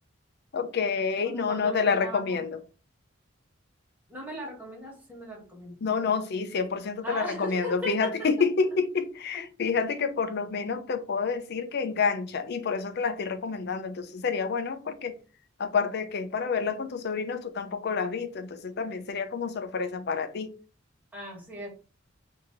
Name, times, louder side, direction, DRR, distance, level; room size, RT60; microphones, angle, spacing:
voice 1, 0.5-2.6 5.8-15.1 15.6-20.5, left 5 dB, 55° left, 0.5 m, -28 dB
voice 2, 1.2-2.4 4.1-5.8 7.0-8.3 9.3-9.4 21.1-21.7, equal, 10° right, 1.3 m, -38 dB
2.9 x 2.7 x 3.8 m
head